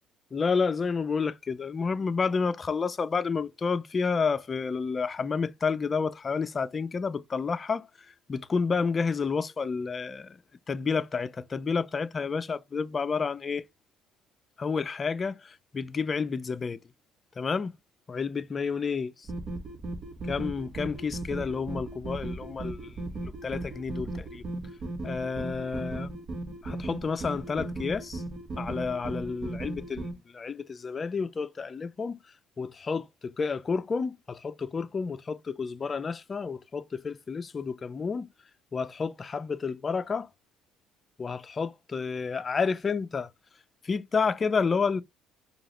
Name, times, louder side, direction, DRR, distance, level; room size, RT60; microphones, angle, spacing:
voice 1, 0.3-7.9 8.3-10.4 10.7-13.6 14.6-16.8 17.4-17.7 18.1-19.3 20.3-22.9 23.2-24.4 25.0-26.2 26.6-28.2 28.6-30.1 30.3-32.2 32.6-38.3 38.7-40.3 41.2-43.3 43.8-45.0, left 5 dB, 35° left, 0.4 m, -30 dB
sound 1, 19.2-30.1, right 2 dB, 45° right, 1.2 m, -37 dB
4.7 x 2.3 x 3.1 m
supercardioid pair, 85°, 0 cm